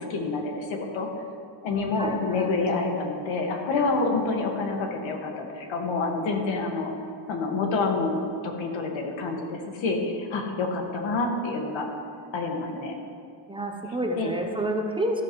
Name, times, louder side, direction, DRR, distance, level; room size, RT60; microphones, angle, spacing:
voice 1, 0.1-1.1 1.6-6.9 7.3-8.1 8.4-11.9 12.3-12.9 14.2-14.3, left 3 dB, 90° left, 2 dB, 1.8 m, -27 dB
voice 2, 2.0-2.5 13.5-15.2, right 1 dB, 10° right, 2 dB, 0.6 m, -29 dB
13.5 x 12.5 x 3.1 m, 2.3 s
cardioid pair, 175°, 46 cm